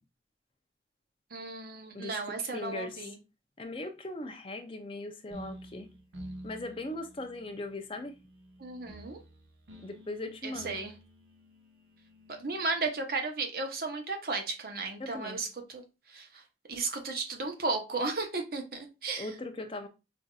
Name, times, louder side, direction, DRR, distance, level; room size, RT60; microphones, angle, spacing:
voice 1, 1.3-3.1 8.6-9.2 10.4-10.9 12.4-15.8 16.1-16.4 16.7-19.3, right 3 dB, 55° right, 0.8 m, -34 dB
voice 2, 1.9-3.1 3.6-5.9 6.4-8.1 9.8-10.9 15.0-15.4 19.2-19.9, left 2 dB, 30° left, 0.5 m, -39 dB
sound 1, 5.3-12.8, equal, 85° right, 1.1 m, -50 dB
5.5 x 2.6 x 2.4 m
head